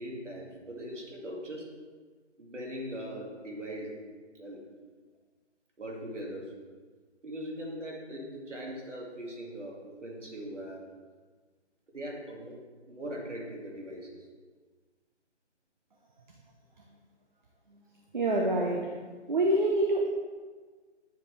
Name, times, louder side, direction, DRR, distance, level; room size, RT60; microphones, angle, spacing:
voice 1, 0.0-1.7 2.4-4.0 4.3-4.6 5.8-6.5 7.2-10.9 11.9-12.6 12.9-14.3 18.5-18.7, equal, 85° right, -1 dB, 2.0 m, -40 dB
voice 2, 18.1-18.9 19.3-20.1, right 1 dB, 40° right, 0 dB, 0.6 m, -26 dB
9.1 x 4.8 x 3.2 m, 1.4 s
figure-of-eight pair, 165°, 35 cm